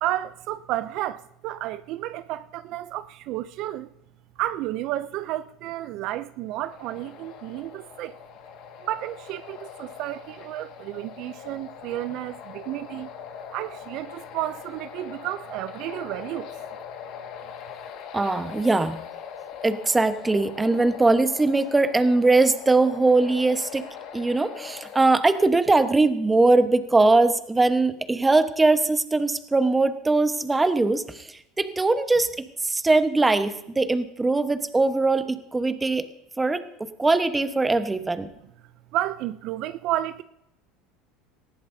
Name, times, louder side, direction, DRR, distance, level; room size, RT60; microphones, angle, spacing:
voice 1, 0.0-3.9 4.4-8.2 8.8-13.1 13.5-16.5 38.9-40.2, right 14 dB, 60° right, 0.4 m, -31 dB
sound 1, 6.6-25.1, left 8 dB, 65° left, 1.7 m, -41 dB
voice 2, 18.1-19.0 19.6-23.8 24.1-36.0 36.4-36.6 37.0-38.3, right 3 dB, 15° right, 1.0 m, -21 dB
19.0 x 14.5 x 2.7 m
supercardioid pair, 100°, 0 cm